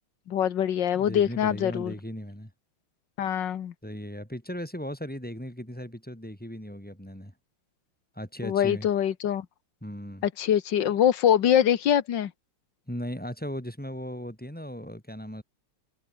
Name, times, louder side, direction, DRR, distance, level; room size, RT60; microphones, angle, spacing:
voice 1, 0.3-1.9 3.2-3.7 8.4-9.5 10.2-12.3, left 10 dB, 60° left, 1.8 m, -24 dB
voice 2, 0.9-2.5 3.8-7.3 8.1-8.9 9.8-10.3 12.9-15.4, equal, 5° left, 5.7 m, -37 dB
omnidirectional pair, 2.3 m